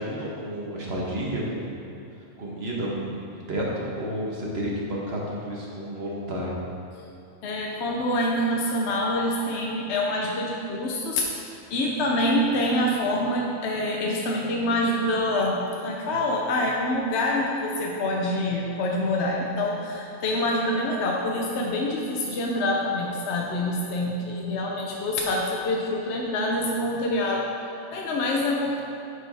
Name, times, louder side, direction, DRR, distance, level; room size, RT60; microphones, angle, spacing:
voice 1, 0.0-1.8 2.4-6.5, equal, 45° right, -4 dB, 1.3 m, -31 dB
voice 2, 7.4-11.3 11.7-27.5 27.9-28.8, left 1 dB, 60° left, -2 dB, 0.8 m, -26 dB
10.0 x 4.8 x 3.4 m, 2.8 s
omnidirectional pair, 1.5 m